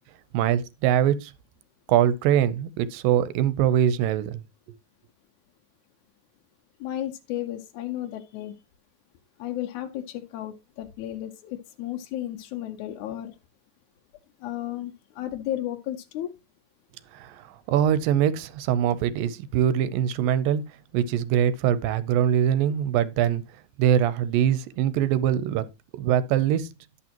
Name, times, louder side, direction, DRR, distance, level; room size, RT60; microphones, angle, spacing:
voice 1, 0.3-1.3 1.9-4.4 17.1-17.4 17.7-20.6 20.9-23.4 23.8-25.6 26.0-26.7, right 10 dB, 80° right, 2.3 m, -23 dB
voice 2, 6.8-8.6 9.4-13.4 14.4-16.3, left 12 dB, 75° left, 1.9 m, -33 dB
11.0 x 8.5 x 2.9 m
omnidirectional pair, 4.2 m